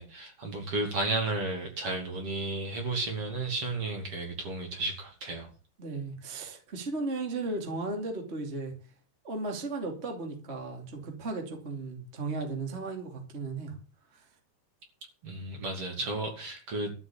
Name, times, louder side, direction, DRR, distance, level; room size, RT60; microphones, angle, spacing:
voice 1, 0.0-5.5 15.2-16.9, right 2 dB, 45° right, 3.3 m, -33 dB
voice 2, 5.8-8.7 9.2-13.8 14.1-14.2, right 3 dB, 20° right, 2.5 m, -35 dB
13.0 x 6.1 x 8.7 m
omnidirectional pair, 4.0 m